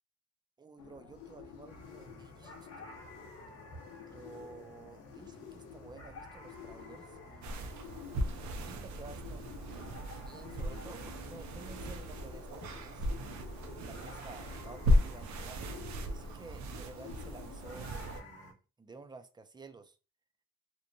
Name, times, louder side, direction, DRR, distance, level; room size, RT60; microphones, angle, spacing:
voice 1, 0.6-2.9 4.1-7.8 8.6-9.5 10.2-13.1 13.5-15.6 16.1-20.0, right 3 dB, 15° right, 8 dB, 0.3 m, -52 dB
sound 1, 0.8-17.9, left 7 dB, 85° left, 0.6 m, -51 dB
sound 2, 1.7-18.5, left 1 dB, 55° left, 0.9 m, -54 dB
sound 3, 7.4-18.2, left 1 dB, 65° right, 0.5 m, -35 dB
2.9 x 2.1 x 2.5 m, 0.33 s
cardioid pair, 90°, 30 cm